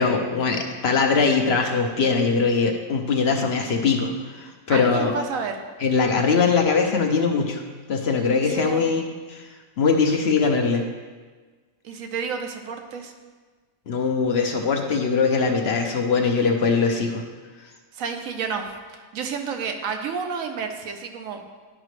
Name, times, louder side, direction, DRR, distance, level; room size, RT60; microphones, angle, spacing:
voice 1, 0.0-5.2 5.8-7.6 7.9-9.4 9.8-10.8 13.9-17.2, left 5 dB, 60° left, 2 dB, 0.9 m, -21 dB
voice 2, 4.7-5.6 8.5-8.9 11.8-13.1 17.9-21.4, right 5 dB, 85° right, 5 dB, 1.2 m, -30 dB
11.0 x 5.0 x 3.2 m, 1.4 s
omnidirectional pair, 1.4 m